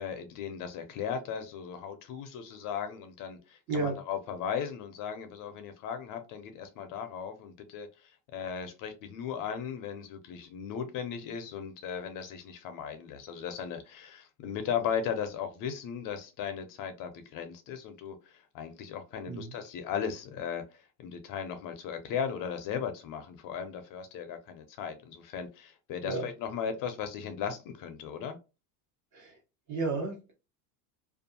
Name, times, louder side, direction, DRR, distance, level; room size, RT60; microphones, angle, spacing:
voice 1, 0.0-20.6 21.0-28.4, left 7 dB, 45° left, 0.5 m, -37 dB
voice 2, 29.7-30.3, right 3 dB, 40° right, 1.2 m, -32 dB
2.6 x 2.4 x 2.6 m
supercardioid pair, 120°, 46 cm